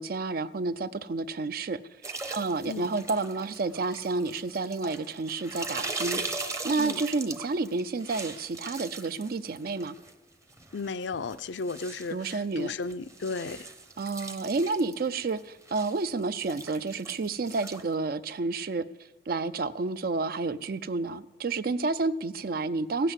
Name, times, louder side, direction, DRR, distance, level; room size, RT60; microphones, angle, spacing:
voice 1, 0.0-1.8 2.3-9.9 12.1-12.7 14.0-18.9 19.3-23.1, right 3 dB, 50° right, 15 dB, 0.4 m, -30 dB
sound 1, 2.0-10.1 10.5-17.9, right 3 dB, 15° right, 0.7 m, -40 dB
voice 2, 10.7-13.7, left 4 dB, 75° left, 13 dB, 0.5 m, -34 dB
15.5 x 7.6 x 8.0 m, 1.1 s
head